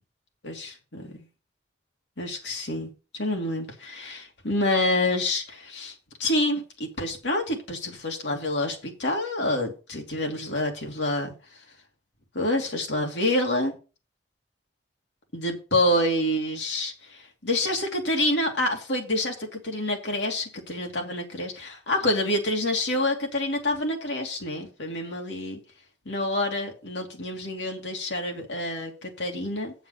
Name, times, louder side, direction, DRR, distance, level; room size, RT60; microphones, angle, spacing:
voice 1, 0.4-1.1 2.2-5.9 6.2-11.3 12.3-13.8 15.3-25.6 26.1-29.7, left 1 dB, 85° left, 2.7 m, -27 dB
7.9 x 7.1 x 5.9 m
head